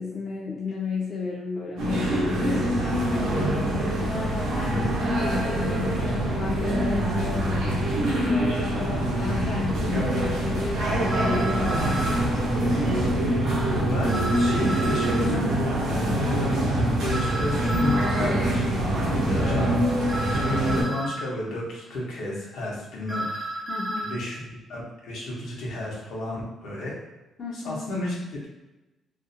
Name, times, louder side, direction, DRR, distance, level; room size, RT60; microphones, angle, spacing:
voice 1, 0.0-4.9 5.2-12.1 16.0-16.3 23.7-24.2 27.4-27.8, left 4 dB, 45° left, -3 dB, 0.4 m, -33 dB
sound 1, 1.8-20.8, right 1 dB, 85° right, 0.7 m, -24 dB
voice 2, 4.6-4.9 13.8-15.5 15.8-16.6 17.0-18.9 19.3-19.8 20.3-23.7 24.0-27.0 27.6-28.2, left 1 dB, 80° left, -3 dB, 0.8 m, -32 dB
sound 2, 11.1-12.2 14.1-15.2 17.1-18.2 20.1-21.2 23.1-24.1, right 1 dB, 5° right, 0.5 m, -32 dB
2.5 x 2.1 x 2.6 m, 1.1 s
cardioid pair, 90°, 0 cm